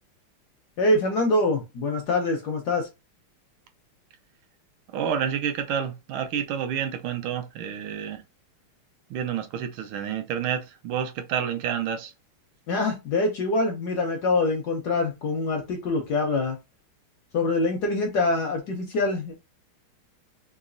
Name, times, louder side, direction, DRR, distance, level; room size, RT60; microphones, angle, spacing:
voice 1, 0.8-2.9 12.7-16.6 17.3-19.3, left 2 dB, 70° left, 1.0 m, -24 dB
voice 2, 4.9-8.2 9.1-12.1, right 8 dB, 75° right, 1.4 m, -29 dB
3.9 x 2.7 x 2.5 m
omnidirectional pair, 2.3 m